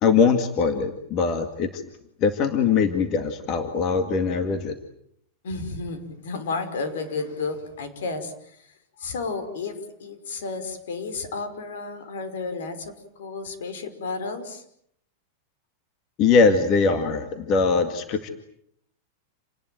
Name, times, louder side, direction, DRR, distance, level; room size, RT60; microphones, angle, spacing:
voice 1, 0.0-1.8 2.2-4.7 16.2-18.3, left 5 dB, 25° left, 8 dB, 2.1 m, -21 dB
voice 2, 5.4-14.6, left 4 dB, 75° left, 10 dB, 5.5 m, -32 dB
28.5 x 20.0 x 9.3 m, 0.70 s
supercardioid pair, 180°, 0 cm